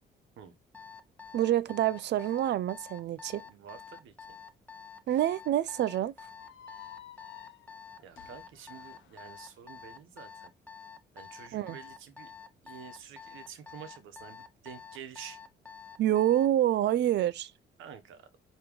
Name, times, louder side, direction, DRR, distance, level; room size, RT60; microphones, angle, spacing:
Alarm, 0.7-16.6, left 6 dB, 5° left, 0.7 m, -48 dB
voice 1, 1.3-3.4 5.1-6.1 11.5-11.8 16.0-17.5, right 12 dB, 60° right, 0.4 m, -27 dB
voice 2, 3.4-4.4 8.0-10.5 11.1-12.3 12.6-15.4 17.8-18.2, right 8 dB, 85° right, 1.0 m, -48 dB
sound 1, 6.4-9.5, left 10 dB, 70° left, 0.9 m, -53 dB
4.7 x 3.1 x 3.5 m
cardioid pair, 90°, 20 cm